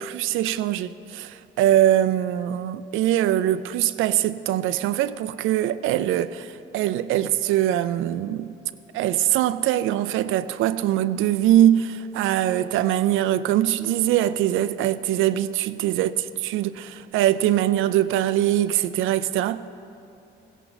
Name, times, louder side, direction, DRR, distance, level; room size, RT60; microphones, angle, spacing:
voice 1, 0.0-8.5 8.9-16.1 16.4-19.6, right 12 dB, 85° right, 0.4 m, -22 dB
15.5 x 11.0 x 4.0 m
cardioid pair, 90°, 20 cm